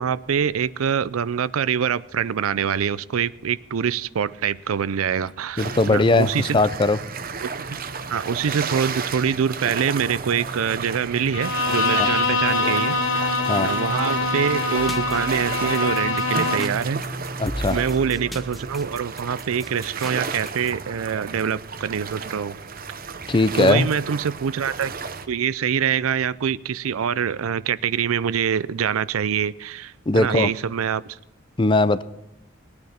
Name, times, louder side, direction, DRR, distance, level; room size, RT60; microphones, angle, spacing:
voice 1, 0.0-6.6 7.7-7.8 8.1-13.3 13.6-17.0 17.7-22.6 23.6-24.9 25.3-31.2, right 7 dB, 85° right, 0.5 m, -25 dB
voice 2, 5.6-7.0 11.9-12.1 13.5-13.7 17.4-17.8 23.3-23.9 30.1-30.5 31.6-32.0, left 2 dB, 25° left, 0.5 m, -19 dB
sound 1, 5.6-25.3, right 4 dB, 45° right, 0.8 m, -33 dB
Bowed string instrument, 11.3-16.8, left 3 dB, 65° left, 1.3 m, -24 dB
sound 2, 14.8-20.7, equal, ahead, 0.8 m, -37 dB
19.5 x 9.6 x 4.4 m
head